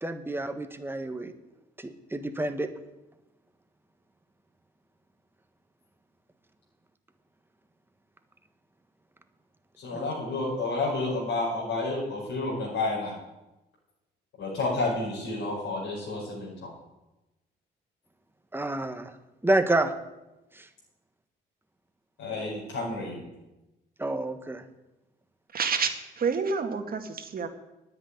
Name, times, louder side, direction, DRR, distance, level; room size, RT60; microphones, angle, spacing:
voice 1, 0.0-1.3 1.8-2.7 9.9-10.1 18.5-19.1 19.4-19.9 20.5-20.7 24.0-24.6, right 2 dB, 10° right, 8 dB, 1.4 m, -28 dB
voice 2, 9.8-13.1 14.4-16.7 22.2-23.3, left 2 dB, 80° left, -6 dB, 5.1 m, -30 dB
voice 3, 25.5-25.9 26.2-27.5, right 5 dB, 50° right, 6 dB, 2.0 m, -28 dB
10.0 x 8.3 x 9.8 m, 1.0 s
cardioid pair, 90°, 20 cm